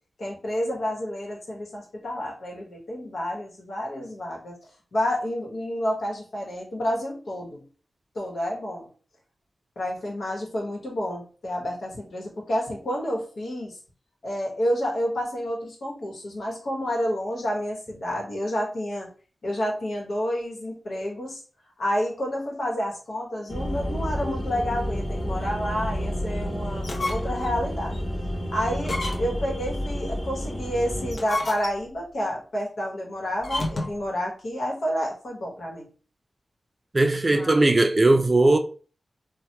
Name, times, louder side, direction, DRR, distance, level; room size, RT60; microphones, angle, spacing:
voice 1, 0.2-4.6 4.9-7.6 8.1-8.9 9.8-13.8 14.2-19.1 19.4-21.4 21.8-28.0 28.5-35.9 37.3-37.6, equal, 80° left, 1.0 m, -29 dB
sound 1, 23.5-31.1, equal, 30° left, 1.0 m, -30 dB
sound 2, 26.7-27.5 27.9-28.0 28.8-29.5 31.0-32.0 33.4-34.1, left 2 dB, 60° left, 0.7 m, -31 dB
voice 2, 36.9-38.6, right 2 dB, 35° right, 0.4 m, -19 dB
3.2 x 2.2 x 2.8 m
cardioid pair, 60°, 0 cm